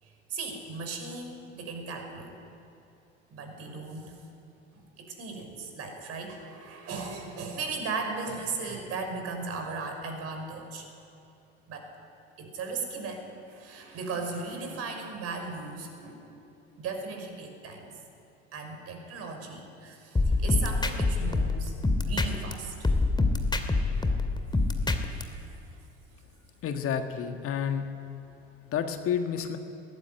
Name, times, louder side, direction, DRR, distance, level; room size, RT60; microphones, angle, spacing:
voice 1, 0.0-2.4 3.3-4.2 4.7-10.9 11.7-11.9 12.4-16.3 16.8-17.9 18.5-21.7 22.0-22.7, right 4 dB, 45° right, 4 dB, 5.9 m, -37 dB
sound 1, 20.2-22.5 22.8-25.2, left 3 dB, 15° left, 2.4 m, -25 dB
voice 2, 26.6-27.9 28.7-29.6, left 8 dB, 40° left, 6 dB, 1.8 m, -30 dB
22.5 x 18.5 x 9.1 m, 2.8 s
figure-of-eight pair, 65°, 33 cm